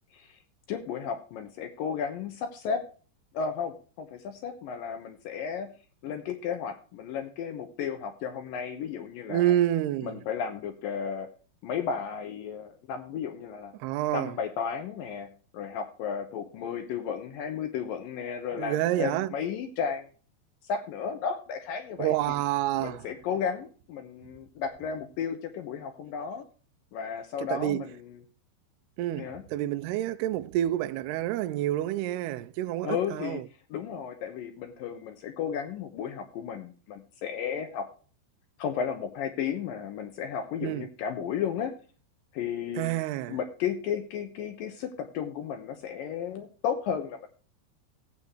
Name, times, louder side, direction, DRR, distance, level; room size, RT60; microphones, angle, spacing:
voice 1, 0.7-2.8 3.3-5.7 6.0-9.6 10.0-11.3 11.6-13.8 14.1-20.1 20.6-22.4 22.8-26.5 26.9-28.2 29.2-29.4 32.8-33.4 33.7-37.9 38.6-41.7 42.3-42.9 43.3-47.3, left 7 dB, 75° left, 2.1 m, -34 dB
voice 2, 9.3-10.2 13.8-14.4 18.6-19.3 22.0-23.0 27.4-27.8 29.0-33.4 40.6-40.9 42.8-43.4, right 13 dB, 85° right, 2.3 m, -28 dB
16.5 x 8.3 x 3.0 m
omnidirectional pair, 5.3 m